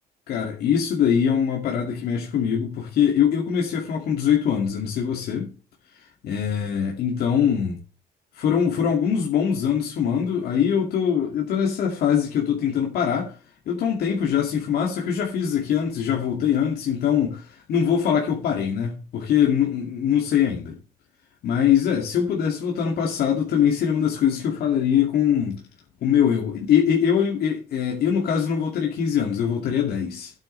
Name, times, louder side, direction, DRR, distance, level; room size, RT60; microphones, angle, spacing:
voice 1, 0.3-5.5 6.2-7.8 8.4-13.3 13.7-20.8 21.4-25.6 26.0-30.3, left 8 dB, 70° left, 2.3 m, -22 dB
14.0 x 8.9 x 3.3 m
cardioid pair, 110°, 17 cm